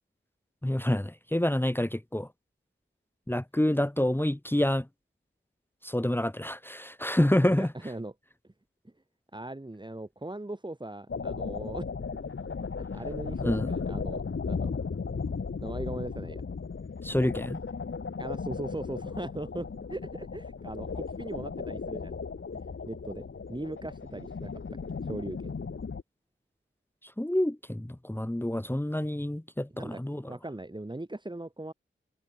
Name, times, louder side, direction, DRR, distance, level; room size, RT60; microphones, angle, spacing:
voice 1, 0.6-2.3 3.3-4.9 5.8-7.7 13.4-13.7 17.0-17.6 27.2-30.2, left 1 dB, 10° left, 1.7 m, -27 dB
voice 2, 7.6-8.1 8.8-8.9 9.3-11.9 12.9-14.8 15.6-16.5 18.2-22.1 22.5-23.2 23.5-24.5 25.0-25.5 29.7-31.7, right 1 dB, 20° right, 5.2 m, -39 dB
sound 1, 11.1-26.0, left 5 dB, 70° left, 2.5 m, -36 dB
wide cardioid pair, 75°, 21 cm